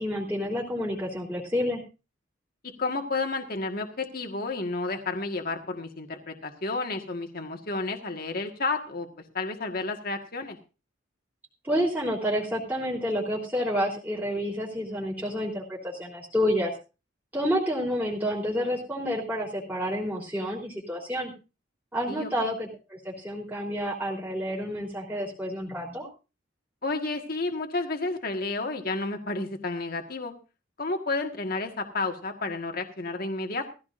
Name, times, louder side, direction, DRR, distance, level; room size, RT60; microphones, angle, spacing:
voice 1, 0.0-1.8 11.6-16.7 17.3-21.3 21.9-26.1, equal, 10° right, -4 dB, 3.5 m, -29 dB
voice 2, 2.8-9.1 9.3-10.6 22.1-22.5 26.8-30.3 30.8-33.7, left 3 dB, 50° left, 4 dB, 1.6 m, -31 dB
17.5 x 15.5 x 2.6 m, 0.32 s
head